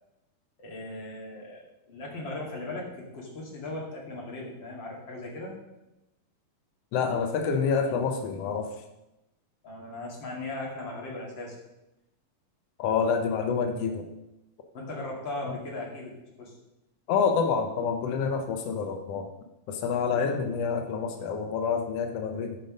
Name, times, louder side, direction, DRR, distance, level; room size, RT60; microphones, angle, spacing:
voice 1, 0.6-5.5 9.6-11.6 14.7-16.1 16.4-16.5, left 2 dB, 35° left, -2 dB, 2.7 m, -38 dB
voice 2, 6.9-8.8 12.8-14.1 17.1-19.3 19.7-22.6, left 5 dB, 90° left, 5 dB, 1.3 m, -27 dB
13.5 x 5.3 x 5.1 m, 0.94 s
omnidirectional pair, 4.0 m